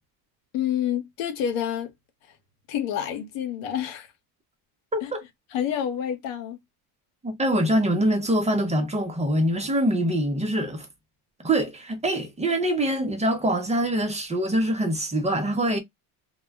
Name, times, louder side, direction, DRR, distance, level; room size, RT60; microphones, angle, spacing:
voice 1, 0.5-1.9 2.7-4.1 5.0-5.1 5.5-6.6, left 9 dB, 90° left, 0.9 m, -28 dB
voice 2, 4.9-5.2 7.2-10.9 11.4-15.8, right 1 dB, 15° right, 0.6 m, -24 dB
2.2 x 2.1 x 3.3 m
cardioid pair, 110°, 47 cm